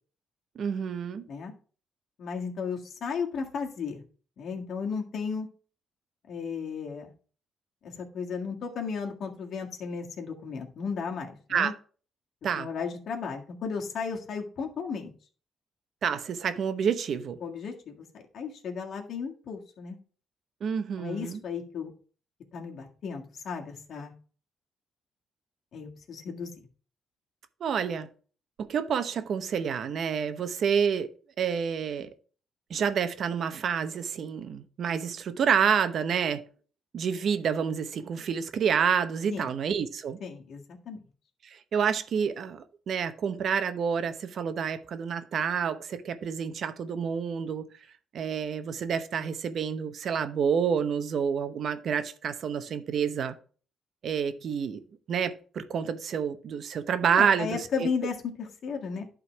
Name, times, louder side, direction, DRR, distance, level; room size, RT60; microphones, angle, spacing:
voice 1, 0.6-1.3 11.5-11.7 12.4-12.7 16.0-17.4 20.6-21.4 27.6-28.1 28.7-31.1 31.4-32.1 32.7-36.4 36.9-40.2 41.4-47.7 48.1-53.3 54.0-57.9, right 7 dB, 60° right, 0.8 m, -28 dB
voice 2, 2.2-4.0 4.4-5.5 6.3-7.1 7.8-11.7 12.6-15.1 17.4-20.0 21.0-21.9 22.5-24.1 25.7-26.7 39.3-39.6 40.2-41.0 57.1-59.0, left 5 dB, 65° left, 1.8 m, -34 dB
11.0 x 3.8 x 4.6 m
cardioid pair, 90°, 0 cm